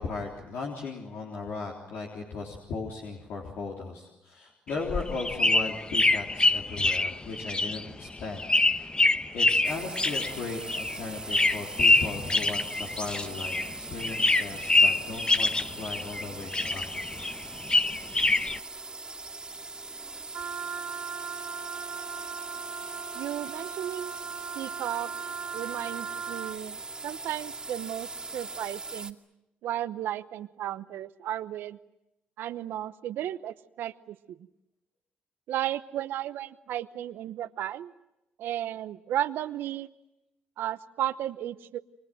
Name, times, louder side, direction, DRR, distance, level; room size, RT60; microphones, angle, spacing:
voice 1, 0.0-8.4 8.7-9.0 9.3-16.9 17.1-17.2, left 4 dB, 80° left, -1 dB, 3.7 m, -37 dB
sound 1, 4.7-13.7 14.0-16.2 16.5-18.6, left 2 dB, 25° left, 1.0 m, -25 dB
sound 2, 9.6-29.1, right 3 dB, 20° right, 2.4 m, -41 dB
Wind instrument woodwind instrument, 20.3-26.6, right 7 dB, 60° right, 1.0 m, -39 dB
voice 2, 23.1-24.1 24.5-25.1 25.5-26.8 27.0-29.2 29.6-31.8 32.4-34.4 35.5-37.9 38.4-39.9 40.6-41.8, right 12 dB, 80° right, 14 dB, 0.9 m, -34 dB
29.5 x 24.5 x 7.8 m, 0.92 s
supercardioid pair, 65°, 4 cm